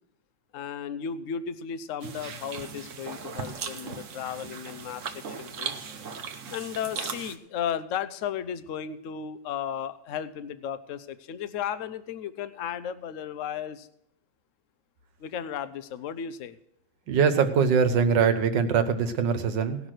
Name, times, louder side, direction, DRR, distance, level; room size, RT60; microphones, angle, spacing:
voice 1, 0.5-5.7 6.5-13.9 15.2-16.6, left 8 dB, 60° left, 13 dB, 0.8 m, -34 dB
sound 1, 2.0-7.4, right 6 dB, 50° right, 1.1 m, -38 dB
voice 2, 17.1-19.9, right 6 dB, 75° right, 9 dB, 1.7 m, -23 dB
18.0 x 6.0 x 6.4 m, 0.76 s
omnidirectional pair, 2.0 m